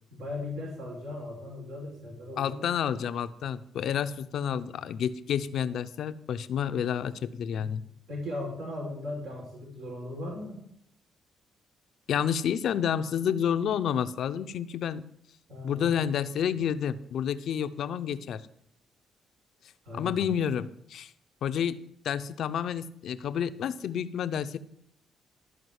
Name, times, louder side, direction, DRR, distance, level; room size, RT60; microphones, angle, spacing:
voice 1, 0.1-2.7 8.1-10.6 15.5-16.1 19.8-20.2, left 2 dB, 80° right, -3 dB, 4.8 m, -38 dB
voice 2, 2.4-7.8 12.1-15.0 15.6-18.4 19.9-21.1 21.4-24.6, left 8 dB, 70° left, 13 dB, 0.6 m, -30 dB
12.5 x 5.0 x 8.0 m, 0.71 s
cardioid pair, 90°, 0 cm